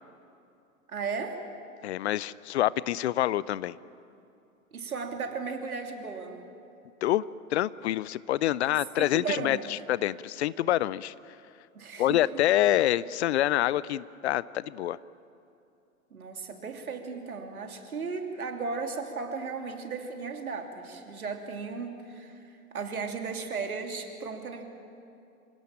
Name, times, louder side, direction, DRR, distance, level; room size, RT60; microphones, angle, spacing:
voice 1, 0.9-1.4 4.7-6.4 9.0-9.7 11.7-12.2 16.1-24.6, right 5 dB, 75° right, 4 dB, 3.0 m, -35 dB
voice 2, 1.8-3.8 7.0-7.2 7.5-11.1 12.0-15.0, left 13 dB, 50° left, 20 dB, 0.6 m, -26 dB
26.0 x 18.0 x 9.0 m, 2.7 s
figure-of-eight pair, 100°, 44 cm